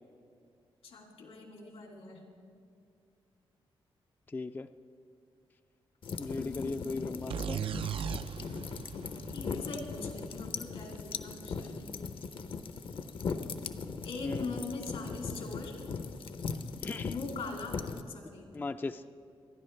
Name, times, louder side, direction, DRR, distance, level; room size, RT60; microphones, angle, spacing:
voice 1, 0.8-2.3 6.3-7.0 9.3-11.9 14.0-15.8 17.0-18.5, left 3 dB, 85° left, 1 dB, 2.5 m, -42 dB
voice 2, 4.3-4.7 6.2-7.6 14.2-14.6 16.8-17.1 18.5-19.0, left 3 dB, 20° left, 9 dB, 0.3 m, -37 dB
sound 1, 6.0-18.0, left 5 dB, 60° left, 0.7 m, -39 dB
sound 2, 7.3-11.0, right 9 dB, 65° right, 0.3 m, -39 dB
27.0 x 10.5 x 3.3 m, 2.4 s
cardioid pair, 85°, 10 cm